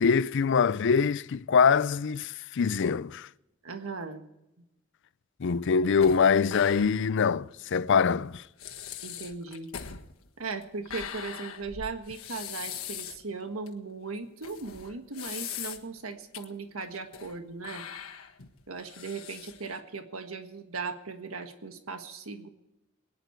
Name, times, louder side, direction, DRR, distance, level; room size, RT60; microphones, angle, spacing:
voice 1, 0.0-3.3 5.4-8.4, left 6 dB, 60° left, 0.5 m, -24 dB
voice 2, 3.6-4.2 9.0-9.7 10.4-17.8 18.7-22.5, right 4 dB, 85° right, 1.5 m, -38 dB
sound 1, 6.0-7.2 7.5-7.6 8.2-8.3 8.6-13.2 13.7-13.8 14.4-16.0 16.3-16.4 16.9-17.4 17.6-19.8, left 9 dB, 80° left, 1.6 m, -41 dB
22.5 x 10.5 x 4.6 m
head